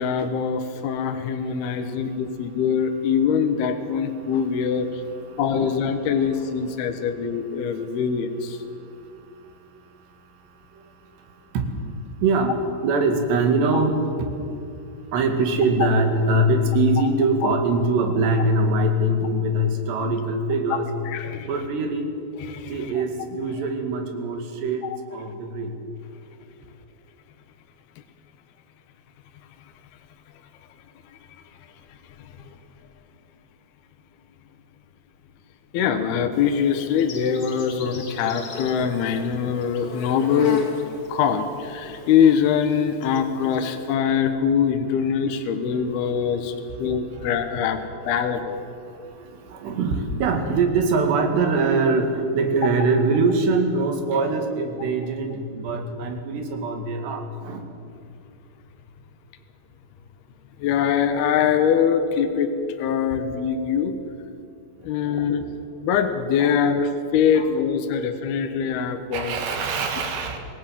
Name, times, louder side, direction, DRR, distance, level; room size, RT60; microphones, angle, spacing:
voice 1, 0.0-4.9 5.4-8.6 15.8-15.9 20.0-20.1 20.7-20.8 21.1-21.5 22.4-23.0 24.8-25.0 35.7-40.6 41.1-46.5 46.8-47.8 48.1-48.6 60.6-62.5 62.8-63.9 64.8-65.4 65.8-69.5, left 7 dB, 70° left, 6 dB, 3.0 m, -23 dB
voice 2, 10.7-11.7 12.2-14.1 15.1-20.9 21.2-22.1 22.7-25.8 45.9-46.2 48.9-57.7 65.0-65.3 66.4-66.8 67.3-67.5 69.1-70.4, right 2 dB, 70° right, 4 dB, 4.3 m, -23 dB
Insect, 36.3-43.9, left 3 dB, 45° left, 2.2 m, -38 dB
26.5 x 18.0 x 7.5 m, 2.7 s
omnidirectional pair, 5.1 m